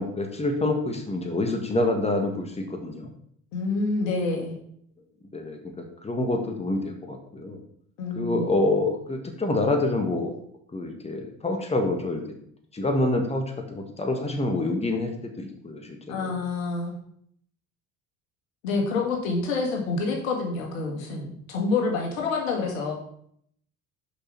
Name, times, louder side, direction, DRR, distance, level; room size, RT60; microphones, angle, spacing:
voice 1, 0.0-3.1 5.3-5.6 6.0-7.6 8.1-10.3 10.7-12.2 12.7-16.3, left 2 dB, 15° left, 4 dB, 1.6 m, -27 dB
voice 2, 3.5-4.5 8.0-8.5 16.1-17.0 18.6-22.9, left 3 dB, 75° left, 0 dB, 2.1 m, -27 dB
6.7 x 5.7 x 5.9 m, 0.67 s
hypercardioid pair, 65°, 41 cm